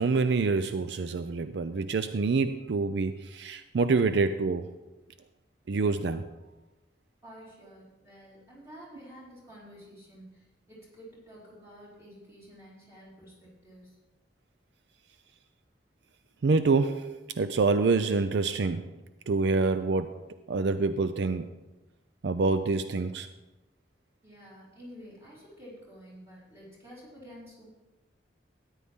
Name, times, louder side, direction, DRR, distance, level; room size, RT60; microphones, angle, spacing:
voice 1, 0.0-4.7 5.7-6.3 16.4-18.9 19.3-21.5 22.2-23.3, right 4 dB, 70° right, 10 dB, 0.4 m, -26 dB
voice 2, 7.2-14.0 24.2-27.7, equal, 15° right, -8 dB, 4.4 m, -50 dB
13.5 x 9.9 x 3.6 m, 1.1 s
head